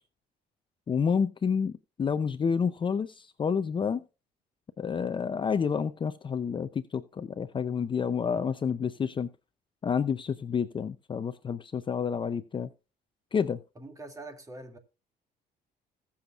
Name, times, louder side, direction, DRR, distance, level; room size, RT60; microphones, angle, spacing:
voice 1, 0.9-1.7 2.0-4.0 4.8-9.3 9.8-12.7 13.3-13.6, left 6 dB, 30° left, 0.6 m, -29 dB
voice 2, 8.2-8.6 13.8-14.8, right 2 dB, 20° right, 2.4 m, -45 dB
21.0 x 7.1 x 2.5 m
cardioid pair, 110°, 17 cm